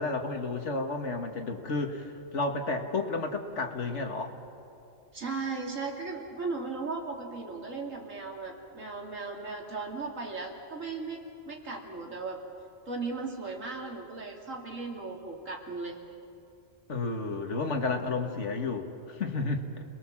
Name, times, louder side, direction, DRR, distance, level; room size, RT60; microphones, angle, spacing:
voice 1, 0.0-4.4 16.9-19.8, left 3 dB, 65° left, 5 dB, 2.0 m, -32 dB
voice 2, 5.1-12.4 12.9-16.0, right 4 dB, 90° right, 0 dB, 3.1 m, -37 dB
29.0 x 21.0 x 7.4 m, 2.7 s
omnidirectional pair, 1.3 m